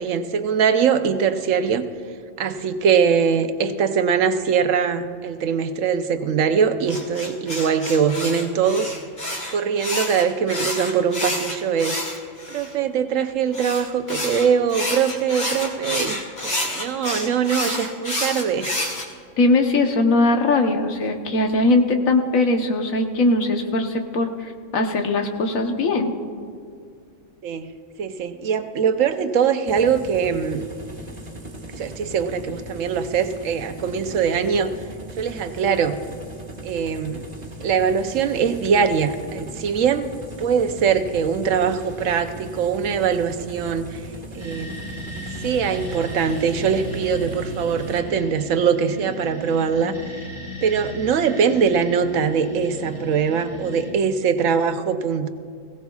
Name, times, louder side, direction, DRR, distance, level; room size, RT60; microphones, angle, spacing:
voice 1, 0.0-1.8 2.4-8.9 9.5-12.0 12.5-18.8 27.4-27.7 28.0-30.7 31.8-34.7 35.2-36.0 36.6-37.2 37.6-40.1 40.4-44.0 44.3-45.0 45.4-49.9 50.6-55.3, right 6 dB, 75° right, 8 dB, 1.1 m, -22 dB
sound 1, 6.9-12.7 13.5-19.1, left 1 dB, 50° left, 2.5 m, -29 dB
voice 2, 19.4-26.1, left 2 dB, 85° left, 4 dB, 1.4 m, -20 dB
sound 2, 29.6-48.0, right 1 dB, 30° right, 1.7 m, -39 dB
sound 3, 44.3-53.9, equal, 70° left, 3.5 m, -36 dB
20.5 x 16.5 x 2.4 m, 2.2 s
omnidirectional pair, 1.4 m